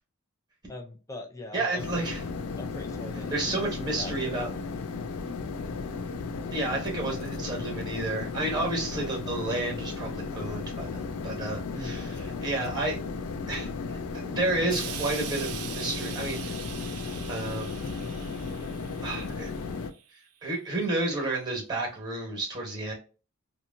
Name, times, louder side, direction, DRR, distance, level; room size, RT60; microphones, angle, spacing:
voice 1, 0.7-2.0 2.6-3.6 3.9-4.7 11.7-12.0, left 1 dB, 15° left, 3 dB, 0.4 m, -41 dB
voice 2, 1.5-2.2 3.3-4.5 6.5-13.0 13.5-16.5 17.3-17.8 19.0-19.5 20.4-22.9, right 2 dB, 20° right, 0 dB, 1.1 m, -31 dB
sound 1, 1.8-19.9, left 4 dB, 75° left, 0.4 m, -35 dB
Explosion, 14.7-20.0 20.8-20.9, right 9 dB, 90° right, 0.5 m, -41 dB
2.8 x 2.3 x 2.6 m, 0.34 s
head